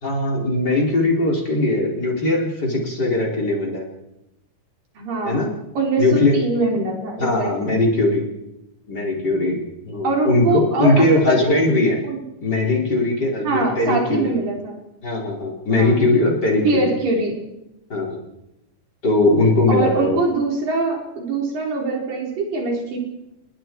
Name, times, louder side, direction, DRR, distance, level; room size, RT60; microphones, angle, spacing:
voice 1, 0.0-3.8 5.2-5.5 6.0-6.4 7.2-8.2 8.9-9.6 9.8-12.0 12.4-14.3 15.0-16.8 17.9-18.2 19.0-20.2, left 2 dB, 30° left, -1 dB, 4.5 m, -19 dB
voice 2, 5.0-5.5 5.8-7.5 10.0-11.6 12.0-12.2 13.4-14.8 15.7-16.0 16.6-17.4 19.7-23.0, right 3 dB, 85° right, 0 dB, 6.1 m, -23 dB
29.0 x 20.5 x 4.6 m, 0.90 s
omnidirectional pair, 3.8 m